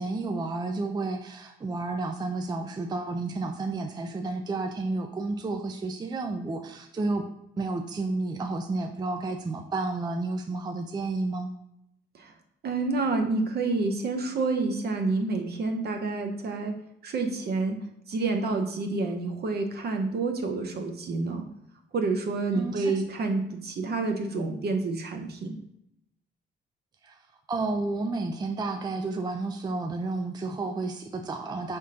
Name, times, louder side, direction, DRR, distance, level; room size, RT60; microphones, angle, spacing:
voice 1, 0.0-7.2 7.6-11.5 22.5-22.9 27.0-27.2 27.5-31.8, right 3 dB, 20° right, 5 dB, 0.4 m, -31 dB
voice 2, 12.6-16.7 17.0-17.8 18.1-21.4 21.9-25.6, right 3 dB, 55° right, 4 dB, 0.8 m, -28 dB
4.9 x 3.5 x 2.8 m, 0.78 s
cardioid pair, 90°, 20 cm